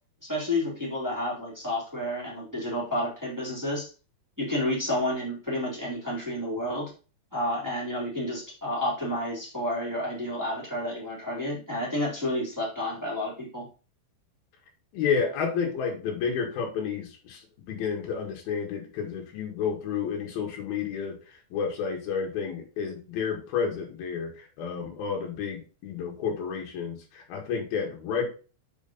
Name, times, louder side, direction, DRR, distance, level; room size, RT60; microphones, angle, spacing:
voice 1, 0.2-3.9 4.4-6.9 7.3-13.6, left 1 dB, 5° right, -5 dB, 2.9 m, -30 dB
voice 2, 14.9-28.2, left 6 dB, 65° left, 2 dB, 3.3 m, -31 dB
7.3 x 4.7 x 4.0 m, 0.35 s
omnidirectional pair, 4.8 m